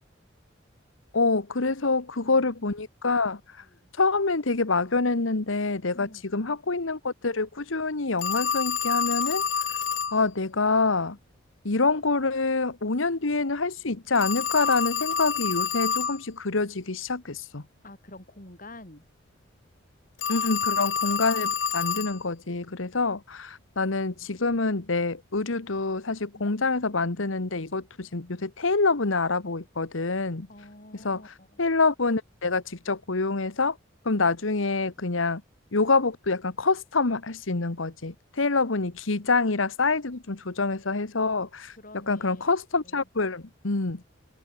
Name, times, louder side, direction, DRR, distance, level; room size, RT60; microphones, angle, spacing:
voice 1, 1.1-3.4 4.0-9.4 10.1-11.2 11.6-17.6 20.3-30.5 30.9-33.8 34.0-35.4 35.7-41.7 42.1-44.0, left 3 dB, 90° left, 1.4 m, -26 dB
voice 2, 1.8-2.5 3.6-3.9 5.9-6.2 17.8-19.1 26.3-26.6 30.5-31.6 41.7-42.5 42.8-43.1, left 1 dB, 45° left, 6.5 m, -48 dB
Telephone, 8.2-10.2 14.2-16.2 20.2-22.2, left 7 dB, 70° left, 1.5 m, -28 dB
head